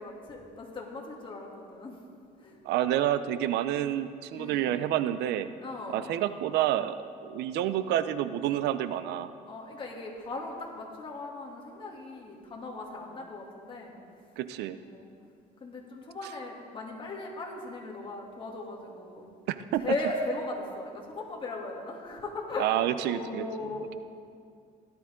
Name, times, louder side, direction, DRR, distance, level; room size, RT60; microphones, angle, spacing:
voice 1, 0.0-2.0 2.4-2.6 4.3-4.7 5.6-6.1 9.5-13.9 14.8-15.1 15.6-19.3 19.8-24.0, left 2 dB, 30° left, -2 dB, 2.7 m, -38 dB
voice 2, 2.7-5.5 5.9-7.0 7.2-9.3 14.4-14.8 19.5-19.8 22.6-23.4, right 12 dB, 85° right, 12 dB, 0.6 m, -28 dB
17.5 x 12.5 x 3.8 m, 2.3 s
cardioid pair, 110°, 17 cm